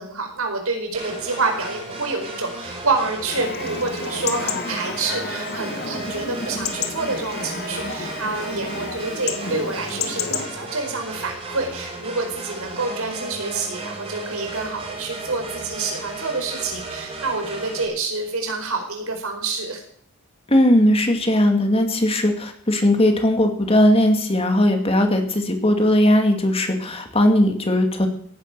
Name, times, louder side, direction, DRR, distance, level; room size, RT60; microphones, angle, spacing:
voice 1, 0.0-19.8, right 3 dB, 80° right, 3 dB, 4.8 m, -27 dB
sound 1, 0.9-17.8, right 3 dB, 30° right, 4.9 m, -35 dB
Chatter / Livestock farm animals working animals / Chirp tweet, 3.3-10.5, left 5 dB, 45° left, 1.9 m, -31 dB
voice 2, 20.5-28.1, left 1 dB, 25° left, 5 dB, 2.4 m, -18 dB
16.5 x 10.5 x 6.8 m, 0.62 s
head